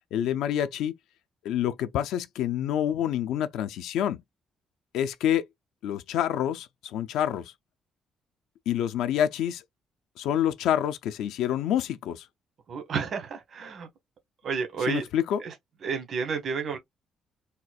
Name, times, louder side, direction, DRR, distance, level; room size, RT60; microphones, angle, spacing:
voice 1, 0.1-0.9 1.4-4.2 4.9-5.5 5.8-7.5 8.7-9.6 10.2-12.3 14.8-15.4, left 10 dB, 90° left, 0.4 m, -27 dB
voice 2, 12.7-13.9 14.4-15.0 15.8-16.8, right 5 dB, 55° right, 1.3 m, -30 dB
4.2 x 2.3 x 2.2 m
cardioid pair, 90°, 0 cm